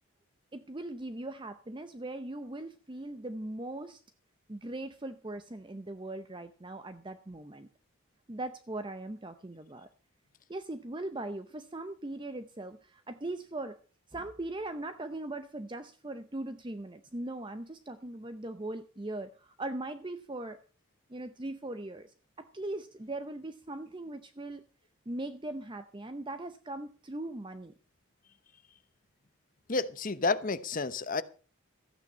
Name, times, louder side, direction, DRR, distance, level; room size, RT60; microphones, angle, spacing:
voice 1, 0.5-4.0 4.5-7.7 8.3-9.9 10.5-13.8 14.1-20.6 21.1-24.6 25.1-27.7, right 2 dB, 25° right, 0.7 m, -40 dB
voice 2, 29.7-31.2, left 3 dB, 40° left, 0.9 m, -30 dB
14.0 x 9.1 x 5.4 m
head